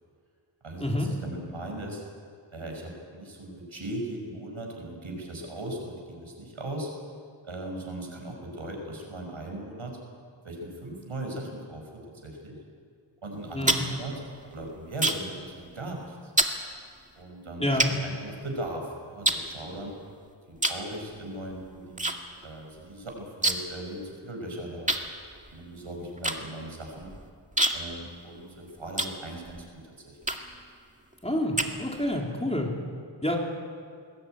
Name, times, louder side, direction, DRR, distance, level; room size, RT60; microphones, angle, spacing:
voice 1, 0.6-2.0 2.5-6.9 7.4-10.0 10.4-11.9 12.2-12.6 13.2-14.2 14.5-16.3 17.2-20.0 20.5-22.1 22.4-24.9 25.5-27.1 27.7-30.2, right 1 dB, 80° right, 1 dB, 6.1 m, -38 dB
sound 1, 13.3-15.4 15.7-16.0 16.4-16.6 17.2-17.3 17.8-18.8 19.2-20.1 20.6-20.9 21.2-22.2 22.4-22.5 22.8-23.8 24.1-24.2 24.9-29.6 30.2-30.6 31.1-32.2, right 1 dB, 15° right, 2.2 m, -28 dB
voice 2, 13.5-13.8 17.6-17.9 31.2-32.7 33.2-33.4, left 1 dB, 15° left, 0 dB, 4.0 m, -28 dB
21.5 x 19.5 x 9.2 m, 2.2 s
wide cardioid pair, 55°, 48 cm